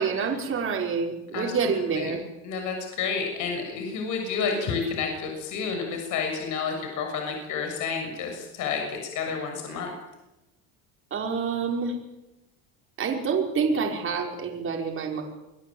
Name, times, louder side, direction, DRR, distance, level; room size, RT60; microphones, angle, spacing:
voice 1, 0.0-2.2 4.5-4.6 11.1-12.0 13.0-15.2, right 5 dB, 35° right, 1 dB, 5.5 m, -27 dB
voice 2, 1.3-2.2 2.4-9.9, left 5 dB, 55° left, 3 dB, 6.8 m, -30 dB
26.0 x 21.0 x 9.0 m, 1.0 s
cardioid pair, 140°, 36 cm